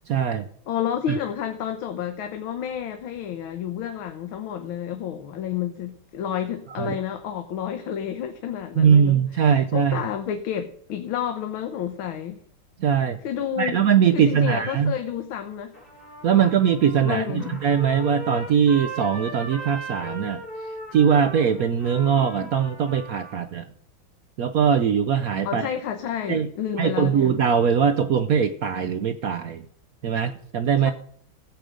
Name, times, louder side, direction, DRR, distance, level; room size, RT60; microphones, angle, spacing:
voice 1, 0.1-0.4 1.1-1.2 6.8-6.9 8.8-10.0 12.8-13.2 13.6-14.9 16.2-20.4 20.9-23.7 24.4-25.6 26.3-26.5 26.8-29.6 30.0-30.9, right 7 dB, 70° right, 0.8 m, -21 dB
voice 2, 0.7-12.4 13.2-13.8 14.1-15.7 16.3-16.6 17.0-17.6 25.4-27.4 30.8-30.9, left 9 dB, 85° left, 1.7 m, -30 dB
Trumpet, 15.7-23.4, right 1 dB, 25° left, 6.7 m, -38 dB
15.0 x 7.8 x 5.1 m
omnidirectional pair, 2.2 m